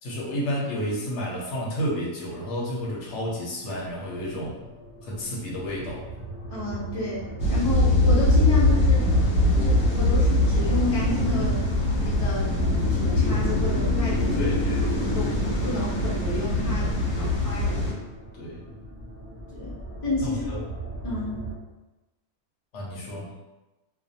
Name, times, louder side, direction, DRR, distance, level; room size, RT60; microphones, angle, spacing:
voice 1, 0.0-4.6 5.0-6.1 14.4-14.9 17.1-17.4 18.3-18.7 20.2-20.6 22.7-23.3, equal, 60° left, -3 dB, 0.9 m, -31 dB
sound 1, 3.7-21.6, right 2 dB, 35° right, 0.5 m, -38 dB
voice 2, 6.5-7.2 7.5-9.0 9.6-11.6 12.0-12.5 12.9-14.5 15.1-16.9 17.2-17.8 19.6-19.8 20.0-20.6 21.0-21.5, left 2 dB, 45° left, -10 dB, 0.4 m, -30 dB
sound 2, 7.4-17.9, left 1 dB, 85° left, 1.1 m, -22 dB
2.4 x 2.2 x 2.6 m, 1.1 s
omnidirectional pair, 1.5 m